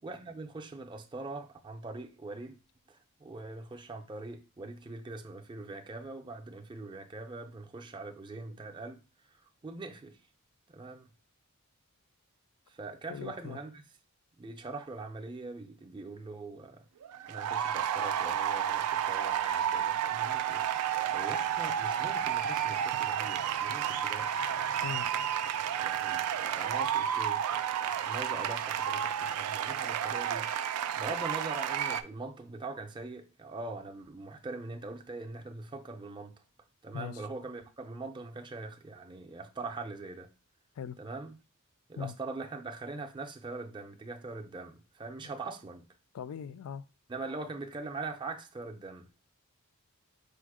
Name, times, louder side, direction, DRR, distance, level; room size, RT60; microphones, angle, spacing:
voice 1, 0.0-2.6 2.9-9.0 9.3-10.2 10.7-11.1 12.7-13.8 14.4-16.8 17.2-20.8 21.1-24.3 25.2-25.4 25.8-36.4 36.8-40.3 41.0-41.3 41.9-45.9 47.1-49.1, right 3 dB, 20° right, 0.5 m, -42 dB
voice 2, 13.1-13.6 24.8-25.1 36.9-37.2 40.8-41.0 42.0-42.1 46.1-46.8, left 8 dB, 70° left, 0.3 m, -40 dB
sound 1, 17.0-32.0, right 9 dB, 85° right, 0.3 m, -31 dB
5.0 x 2.1 x 4.7 m
head